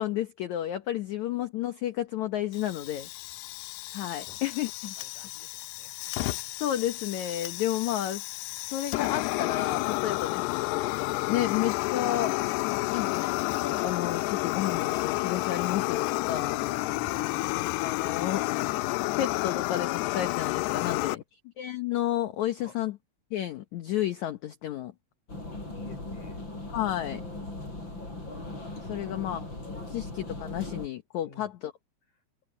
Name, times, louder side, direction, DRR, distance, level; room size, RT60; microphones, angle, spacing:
voice 1, 0.0-3.1 3.9-4.9 6.6-8.2 8.7-10.9 11.3-12.3 12.9-13.3 13.6-16.6 17.7-18.4 19.2-21.2 21.6-23.0 23.3-24.9 26.7-27.2 28.9-31.7, left 12 dB, 70° left, 1.8 m, -31 dB
Fire, 2.5-21.1, left 22 dB, 85° left, 2.6 m, -30 dB
voice 2, 5.0-6.5 16.3-17.4 17.8-18.2 20.8-21.2 22.6-22.7 25.5-26.4 29.0-29.3 29.8-30.1 31.2-31.5, left 4 dB, 50° left, 5.9 m, -51 dB
sound 1, 25.3-30.9, left 2 dB, 25° left, 8.6 m, -39 dB
omnidirectional pair, 4.7 m